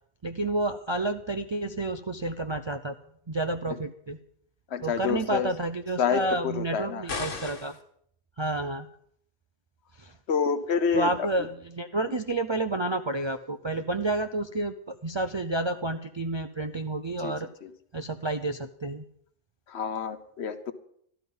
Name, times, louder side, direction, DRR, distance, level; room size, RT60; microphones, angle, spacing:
voice 1, 0.2-2.9 3.3-4.2 4.8-7.8 8.4-8.9 10.0-10.1 10.9-17.5 17.9-19.0, right 2 dB, 40° right, 7 dB, 0.4 m, -30 dB
voice 2, 4.7-5.5 6.0-7.0 10.3-11.1 11.4-11.5 17.2-17.4 17.6-17.7 19.7-20.7, left 6 dB, 65° left, 11 dB, 1.1 m, -28 dB
sound 1, 7.1-7.8, left 4 dB, 85° left, 1.9 m, -34 dB
13.5 x 12.5 x 5.4 m, 0.67 s
omnidirectional pair, 1.2 m